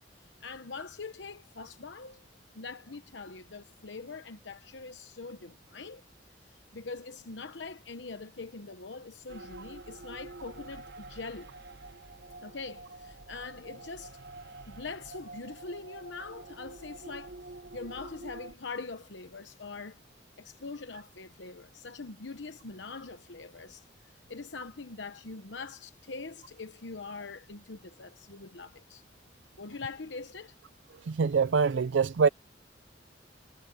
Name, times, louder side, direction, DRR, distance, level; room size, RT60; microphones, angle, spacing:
voice 1, 0.4-2.2 2.5-6.0 6.4-11.5 12.4-14.2 14.7-20.0 20.4-29.0 29.6-30.5, left 4 dB, 75° left, 1.0 m, -43 dB
sound 1, 9.3-18.5, right 2 dB, 65° right, 0.9 m, -47 dB
voice 2, 31.0-32.3, right 5 dB, 85° right, 0.5 m, -24 dB
head